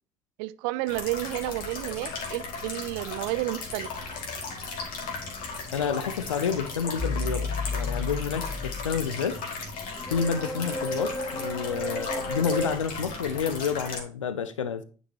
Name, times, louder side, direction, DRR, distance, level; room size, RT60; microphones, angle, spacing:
voice 1, 0.4-3.9, right 19 dB, 70° right, 0.4 m, -31 dB
sound 1, 0.9-14.0, left 4 dB, 60° left, 2.1 m, -36 dB
voice 2, 5.7-9.4 10.1-14.8, left 6 dB, 90° left, 0.4 m, -29 dB
sound 2, 7.0-12.7, left 2 dB, 15° left, 0.8 m, -33 dB
9.3 x 5.3 x 2.8 m
figure-of-eight pair, 45°, 16 cm